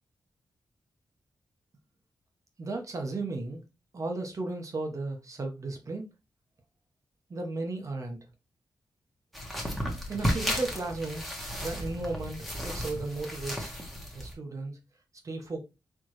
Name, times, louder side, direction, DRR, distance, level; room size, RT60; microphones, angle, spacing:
voice 1, 2.6-3.6 3.9-6.1 7.3-8.2 10.1-11.2 11.6-13.7 14.1-14.8 15.2-15.6, right 2 dB, 40° right, 1.2 m, -35 dB
sound 1, 9.3-14.3, equal, ahead, 1.3 m, -34 dB
4.6 x 3.6 x 3.1 m
wide cardioid pair, 120°, 8 cm